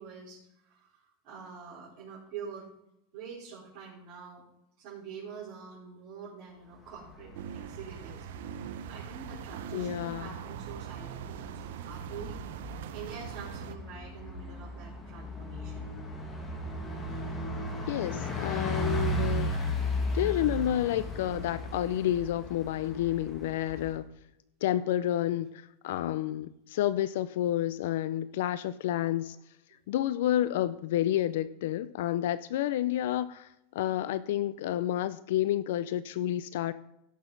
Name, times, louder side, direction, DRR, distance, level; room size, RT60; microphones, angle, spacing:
voice 1, 0.0-2.7 3.1-4.4 4.8-8.3 8.9-12.4 12.9-15.9, right 6 dB, 50° right, -10 dB, 4.4 m, -46 dB
Bus, 6.9-24.0, left 1 dB, 20° left, 2.1 m, -36 dB
sound 1, 7.3-13.8, right 10 dB, 75° right, 0.6 m, -42 dB
voice 2, 9.7-10.4 17.9-19.6 20.1-24.1 24.6-29.4 29.9-33.5 33.7-36.7, left 12 dB, 75° left, 15 dB, 0.4 m, -30 dB
16.5 x 6.3 x 3.9 m, 0.84 s
supercardioid pair, 135°, 0 cm